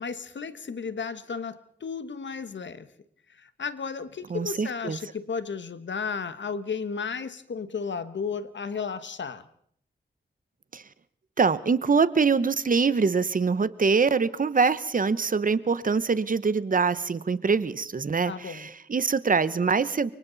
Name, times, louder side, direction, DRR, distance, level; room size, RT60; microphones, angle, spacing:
voice 1, 0.0-2.9 3.4-9.5 18.2-18.7, left 5 dB, 75° left, 1.4 m, -34 dB
voice 2, 4.3-5.0 10.7-10.8 11.4-20.1, right 5 dB, 45° right, 1.0 m, -24 dB
29.5 x 24.5 x 4.1 m
wide cardioid pair, 115°, 19 cm